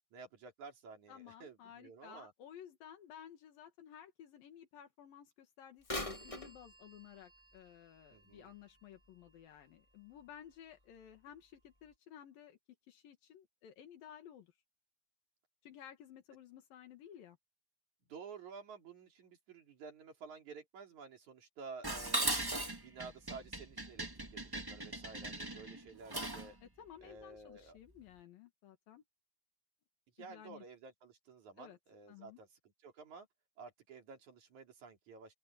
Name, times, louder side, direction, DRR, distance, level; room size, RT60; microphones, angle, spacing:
voice 1, 0.1-2.3 8.1-8.5 18.1-26.6 27.0-27.8 30.2-33.3 33.6-35.3, right 5 dB, 55° right, 4.6 m, -52 dB
voice 2, 1.1-12.6 12.9-14.5 15.6-17.4 26.6-29.0 30.2-30.6 31.6-31.8 32.1-32.4, left 9 dB, 80° left, 3.5 m, -55 dB
Bird vocalization bird call bird song / Telephone, 5.8-9.6 10.2-10.3 11.1-11.2 11.8-11.9, left 1 dB, 60° left, 0.3 m, -46 dB
Dishes pots and pans, 21.8-26.5, right 1 dB, 15° right, 0.8 m, -38 dB
open air
omnidirectional pair, 4.0 m